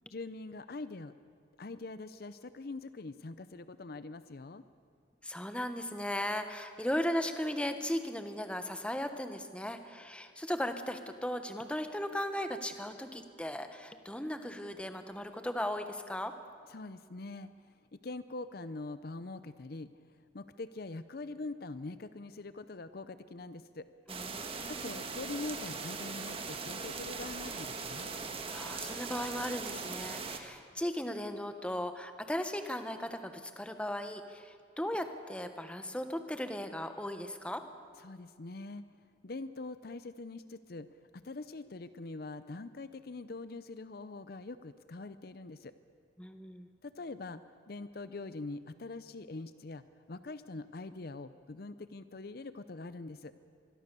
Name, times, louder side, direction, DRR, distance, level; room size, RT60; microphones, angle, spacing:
voice 1, 0.1-1.1 1.6-4.6 16.7-19.9 20.3-23.9 24.7-28.1 38.0-40.9 41.1-45.7 46.8-47.4 47.7-49.8 50.1-53.3, left 3 dB, 50° left, 13 dB, 0.6 m, -43 dB
voice 2, 5.2-16.3 24.1-24.9 28.5-37.6 46.2-46.7, left 1 dB, 5° left, 7 dB, 1.2 m, -37 dB
sound 1, 24.1-30.4, right 4 dB, 30° right, 1.5 m, -40 dB
24.5 x 22.0 x 6.9 m, 2.2 s
head